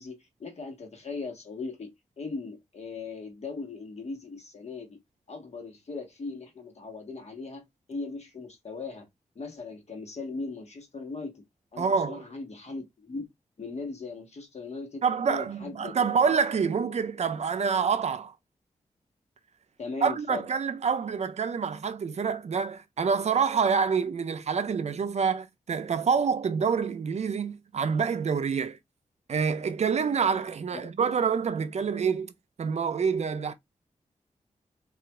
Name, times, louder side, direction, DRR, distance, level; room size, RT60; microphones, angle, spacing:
voice 1, 0.0-5.0 5.3-9.1 9.3-11.4 11.7-13.2 13.6-16.0 16.3-16.5 19.8-20.4 30.7-30.9, left 3 dB, 55° left, 1.1 m, -39 dB
voice 2, 11.8-12.2 15.0-18.3 20.0-28.8 29.3-32.3 32.6-33.5, right 6 dB, 55° right, 0.4 m, -27 dB
3.9 x 2.4 x 2.2 m
cardioid pair, 60°, 13 cm